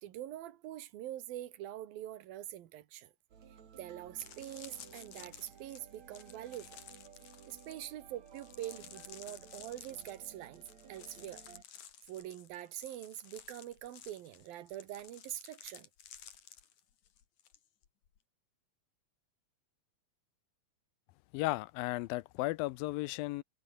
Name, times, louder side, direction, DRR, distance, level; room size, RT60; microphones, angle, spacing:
voice 1, 0.0-3.1 3.8-6.8 7.5-10.6 10.9-11.4 12.1-15.9, right 13 dB, 80° right, 3.2 m, -44 dB
sound 1, 3.3-11.6, right 7 dB, 50° right, 3.6 m, -56 dB
sound 2, 4.1-17.6 17.8-18.2, left 9 dB, 55° left, 3.2 m, -54 dB
voice 2, 21.3-23.4, left 19 dB, 80° left, 2.3 m, -35 dB
omnidirectional pair, 4.2 m